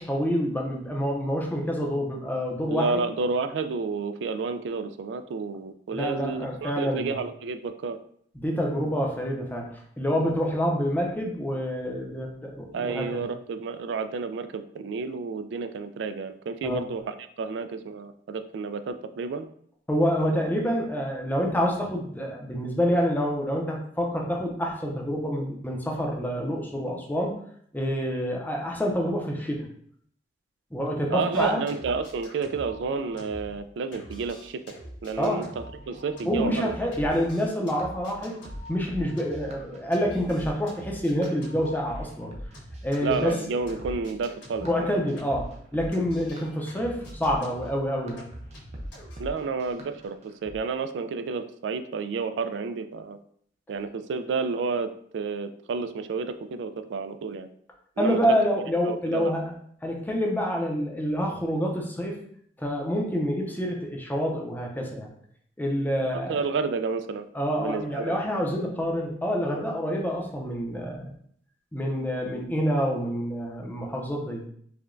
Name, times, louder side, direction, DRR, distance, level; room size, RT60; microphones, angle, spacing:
voice 1, 0.0-2.9 5.9-7.1 8.4-13.1 16.6-16.9 19.9-27.4 27.7-29.7 30.7-31.6 35.2-35.4 36.2-38.3 38.7-42.3 42.8-43.3 44.6-48.3 58.0-59.5 59.8-62.2 62.6-65.1 65.6-66.4 67.3-71.1 71.7-74.4, equal, 10° left, 0 dB, 0.6 m, -27 dB
voice 2, 2.7-8.0 12.7-19.5 31.1-34.6 35.0-36.7 43.0-45.0 49.2-53.2 53.7-57.5 58.0-58.2 58.8-59.4 66.0-67.2 67.6-68.2, right 4 dB, 80° right, 10 dB, 0.3 m, -30 dB
sound 1, 31.3-33.7 33.9-45.6 45.9-49.2, equal, 80° left, 1.5 m, -45 dB
sound 2, 36.9-50.6, equal, 40° right, 0.6 m, -43 dB
4.8 x 2.2 x 2.5 m, 0.63 s
head